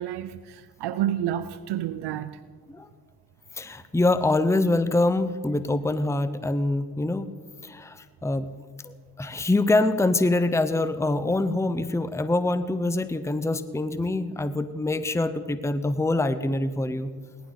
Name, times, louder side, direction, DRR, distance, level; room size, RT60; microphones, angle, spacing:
voice 1, 0.0-2.3, right 11 dB, 85° right, 0.6 m, -29 dB
voice 2, 3.6-7.3 7.6-8.5 8.8-17.1, left 2 dB, 5° left, 0.8 m, -25 dB
18.0 x 11.5 x 4.0 m
supercardioid pair, 50°, 40 cm